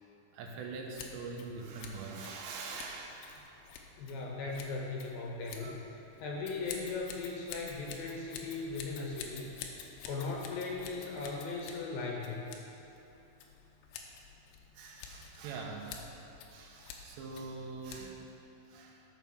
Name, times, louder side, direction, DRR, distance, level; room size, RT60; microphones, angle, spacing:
voice 1, 0.3-3.5 5.6-5.8 14.7-16.1 16.5-19.0, right 4 dB, 85° right, 0 dB, 3.4 m, -44 dB
Scissors, 0.9-18.4, left 6 dB, 90° left, 3.1 m, -50 dB
voice 2, 4.0-5.8 6.2-9.5 10.1-12.5, left 3 dB, 70° left, -2 dB, 2.5 m, -38 dB
13.5 x 5.6 x 6.1 m, 2.9 s
omnidirectional pair, 5.0 m